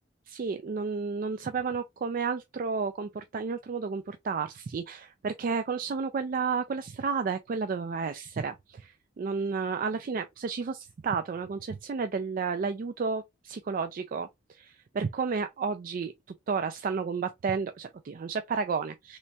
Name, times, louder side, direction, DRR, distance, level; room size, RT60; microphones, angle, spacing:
voice 1, 0.3-16.1 16.5-19.2, right 5 dB, 45° right, 0.3 m, -32 dB
3.3 x 3.1 x 2.7 m
head